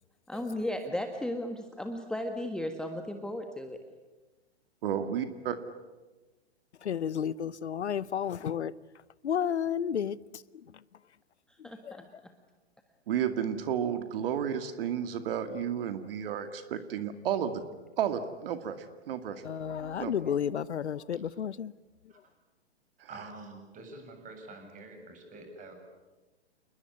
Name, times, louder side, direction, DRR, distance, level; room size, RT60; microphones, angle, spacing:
voice 1, 0.3-3.8 11.5-12.3 19.8-20.4, left 1 dB, ahead, 1.5 m, -36 dB
voice 2, 4.8-5.6 13.1-17.6 18.0-19.4 20.0-20.1, right 9 dB, 55° right, 2.2 m, -32 dB
voice 3, 6.8-8.7 9.2-10.2 10.5-10.6 11.6-12.0 19.4-21.7, left 8 dB, 75° left, 0.9 m, -32 dB
voice 4, 23.1-25.7, right 3 dB, 25° right, 7.7 m, -47 dB
29.0 x 21.0 x 9.8 m
hypercardioid pair, 120°, 34 cm